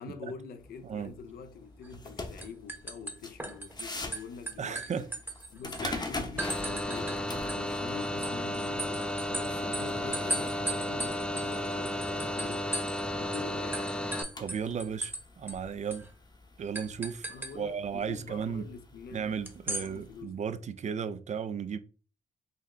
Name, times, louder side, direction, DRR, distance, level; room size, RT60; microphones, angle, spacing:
voice 1, 0.0-5.1 5.5-12.8 13.2-14.0 17.3-19.3 19.7-20.5, left 5 dB, 75° left, 0.6 m, -46 dB
sound 1, 0.6-20.2, left 3 dB, 25° left, 0.8 m, -45 dB
sound 2, 1.8-2.1 2.4-3.8 4.1-5.8 6.4-7.2 7.5-13.0 13.3-13.4 13.7-15.2 15.5-15.6 15.9-16.1 16.7-17.5 19.5-19.9, right 1 dB, 15° right, 0.9 m, -37 dB
voice 2, 4.6-5.1 5.8-6.0 14.4-16.1 16.6-17.3 17.5-18.7 19.1-21.8, right 7 dB, 45° right, 0.5 m, -35 dB
sound 3, 6.4-14.2, left 1 dB, 5° left, 0.5 m, -33 dB
4.0 x 2.1 x 3.6 m
cardioid pair, 65°, 16 cm